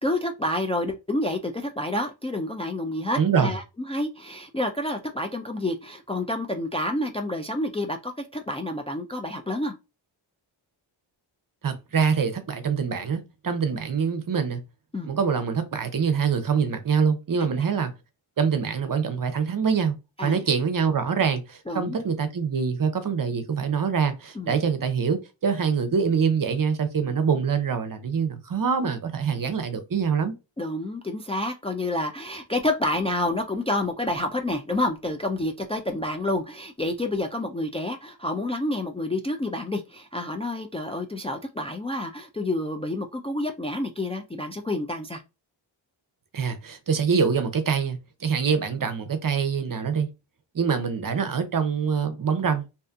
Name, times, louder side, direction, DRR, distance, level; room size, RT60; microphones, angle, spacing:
voice 1, 0.0-9.7 14.9-15.1 20.2-20.4 21.7-22.0 24.4-24.6 30.6-45.2, left 1 dB, 15° left, 0.4 m, -29 dB
voice 2, 3.2-3.5 11.6-14.6 15.0-17.9 18.4-19.9 20.2-30.3 46.3-50.1 50.5-52.6, right 6 dB, 45° right, 0.7 m, -25 dB
2.7 x 2.4 x 2.3 m
cardioid pair, 50°, 49 cm